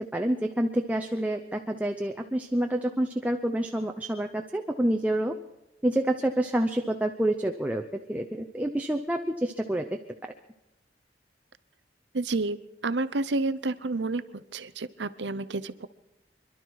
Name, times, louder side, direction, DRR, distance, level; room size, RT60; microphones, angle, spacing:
voice 1, 0.1-5.4 5.8-10.0, right 1 dB, 10° right, 3 dB, 0.7 m, -28 dB
voice 2, 12.1-12.6 12.8-15.9, right 3 dB, 85° right, 15 dB, 0.8 m, -30 dB
26.0 x 11.5 x 4.7 m, 0.96 s
head